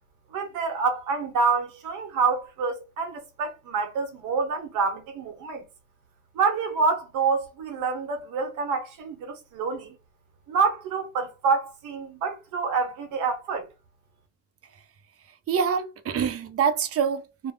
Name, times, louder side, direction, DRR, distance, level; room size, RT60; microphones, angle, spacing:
voice 1, 0.3-5.6 6.3-9.9 10.5-13.7, right 4 dB, 90° right, 0.9 m, -27 dB
voice 2, 15.5-17.5, right 7 dB, 50° right, 0.6 m, -25 dB
2.3 x 2.1 x 3.4 m
cardioid pair, 90°, 30 cm